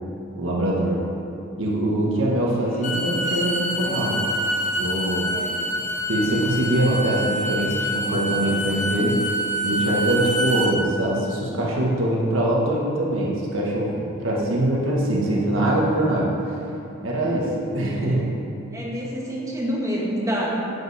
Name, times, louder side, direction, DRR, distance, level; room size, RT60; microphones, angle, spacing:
voice 1, 0.3-1.0 1.6-4.2 4.8-5.3 6.1-9.2 9.6-16.3 17.0-18.3, right 1 dB, 70° right, -4 dB, 1.6 m, -23 dB
Bowed string instrument, 2.7-10.7, equal, 35° left, 1.4 m, -26 dB
voice 2, 18.7-20.7, equal, 15° right, -4 dB, 1.7 m, -27 dB
10.0 x 9.1 x 4.3 m, 2.7 s
head